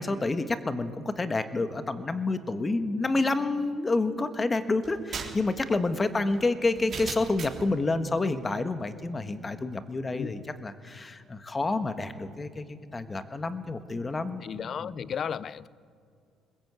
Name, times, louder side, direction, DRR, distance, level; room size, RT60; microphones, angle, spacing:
voice 1, 0.0-14.5 14.8-14.9, left 3 dB, 20° left, 9 dB, 1.4 m, -29 dB
sound 1, 4.8-7.7, right 6 dB, 40° right, 3.5 m, -39 dB
voice 2, 14.4-15.7, left 7 dB, 40° left, 19 dB, 0.5 m, -34 dB
22.0 x 20.5 x 8.2 m, 2.3 s
cardioid pair, 125°, 0 cm